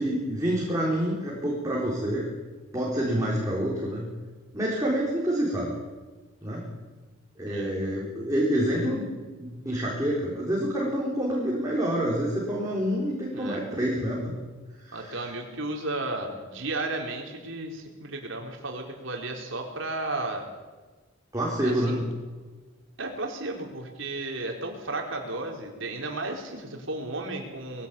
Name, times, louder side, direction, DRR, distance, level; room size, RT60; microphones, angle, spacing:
voice 1, 0.0-2.3 2.7-4.0 4.5-5.7 6.4-6.7 7.4-9.0 9.4-14.3 14.8-15.2 21.3-22.0, equal, 15° right, -4 dB, 4.5 m, -27 dB
voice 2, 7.5-7.8 13.3-13.6 14.9-20.5 21.6-22.0 23.0-27.9, right 2 dB, 65° right, 1 dB, 4.4 m, -34 dB
22.0 x 17.0 x 8.6 m, 1.3 s
head